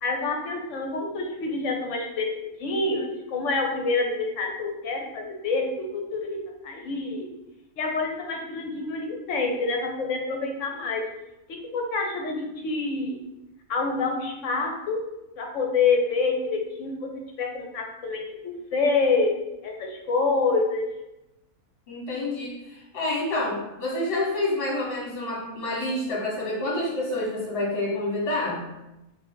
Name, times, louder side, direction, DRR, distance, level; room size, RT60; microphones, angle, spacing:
voice 1, 0.0-6.4 6.6-7.3 7.8-11.0 11.7-13.2 13.7-15.0 15.4-17.1 17.4-18.2 18.7-19.3 19.6-20.9, left 3 dB, 65° left, 2 dB, 0.9 m, -27 dB
voice 2, 21.9-28.6, left 2 dB, 45° left, -3 dB, 1.1 m, -28 dB
3.9 x 2.6 x 3.9 m, 0.95 s
omnidirectional pair, 1.5 m